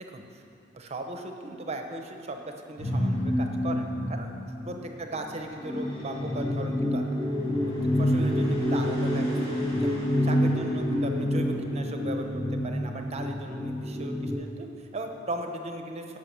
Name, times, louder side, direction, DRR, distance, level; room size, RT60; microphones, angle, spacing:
voice 1, 0.7-4.3 4.6-7.1 8.0-9.4 9.8-16.0, right 2 dB, 35° right, 4 dB, 0.8 m, -37 dB
sound 1, 2.8-14.3, equal, 30° left, 2.2 m, -28 dB
11.5 x 5.4 x 6.9 m, 2.7 s
head